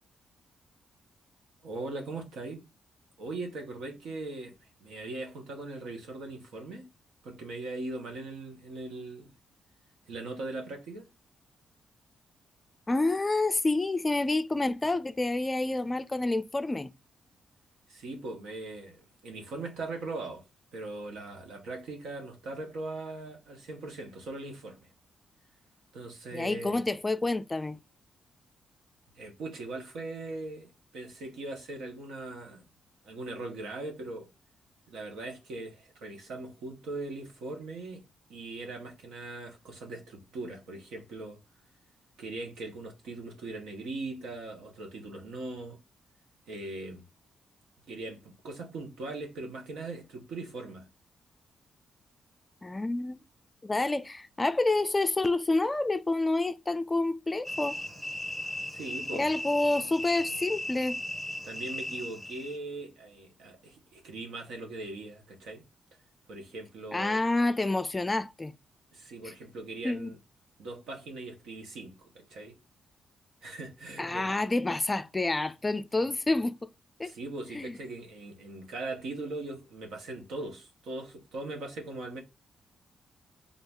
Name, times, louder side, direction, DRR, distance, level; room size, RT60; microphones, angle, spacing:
voice 1, 1.6-2.6 3.2-4.5 4.8-6.9 7.2-9.3 10.1-11.1 17.9-20.4 20.7-24.9 25.9-26.8 29.2-32.6 33.0-34.3 34.9-38.0 38.3-41.4 42.2-45.8 46.5-47.1 47.9-50.9 58.7-59.2 61.4-65.6 66.3-67.2 68.9-70.2 70.6-72.5 73.4-74.3 77.0-82.2, right 2 dB, 90° right, 1.2 m, -40 dB
voice 2, 12.9-16.9 26.3-27.8 52.6-53.2 53.6-57.8 59.1-61.0 66.9-68.5 69.8-70.1 74.0-76.7 77.0-77.1 77.5-77.7, left 2 dB, 20° left, 0.3 m, -28 dB
sound 1, 57.4-62.6, left 1 dB, 5° right, 0.8 m, -37 dB
3.7 x 2.7 x 3.6 m
cardioid pair, 100°, 0 cm